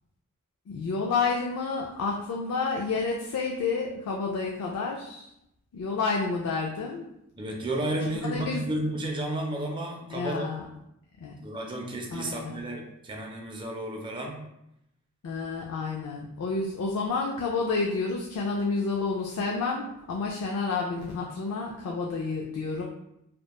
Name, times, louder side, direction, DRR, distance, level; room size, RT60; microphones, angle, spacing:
voice 1, 0.7-5.3 5.7-7.1 8.2-8.6 10.1-10.6 11.2-11.3 12.1-12.6 15.2-22.8, left 4 dB, 85° left, -1 dB, 0.3 m, -30 dB
voice 2, 7.4-10.4 11.4-14.4, right 1 dB, 20° right, 1 dB, 0.4 m, -32 dB
2.9 x 2.1 x 2.2 m, 0.83 s
head